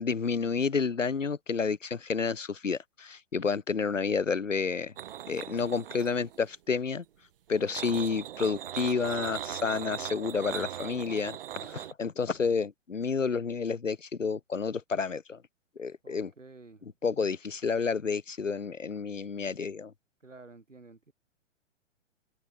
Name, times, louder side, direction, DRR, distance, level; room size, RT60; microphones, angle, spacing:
voice 1, 0.0-4.9 5.3-7.0 7.5-15.4 15.8-16.3 17.0-19.9, left 5 dB, 80° left, 1.1 m, -30 dB
sound 1, 5.0-6.4 7.5-11.9, right 11 dB, 45° right, 1.6 m, -39 dB
voice 2, 16.0-16.9 17.2-17.3 20.2-21.1, right 3 dB, 80° right, 4.2 m, -51 dB
open air
figure-of-eight pair, 115°, 37 cm